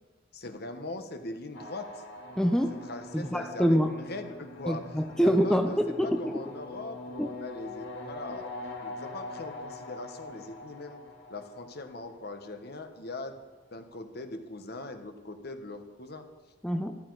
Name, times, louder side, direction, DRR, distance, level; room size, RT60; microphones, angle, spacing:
voice 1, 0.3-2.0 2.9-4.8 5.1-8.5 8.8-11.0 11.3-13.4 13.7-16.3, left 2 dB, 55° left, 7 dB, 1.3 m, -41 dB
sound 1, 1.5-12.7, left 2 dB, 70° left, 2.8 m, -44 dB
voice 2, 2.4-2.8 3.1-3.9 4.7-6.4 7.2-7.3 16.6-17.0, equal, 5° left, 5 dB, 0.6 m, -25 dB
13.5 x 13.0 x 4.8 m, 1.3 s
head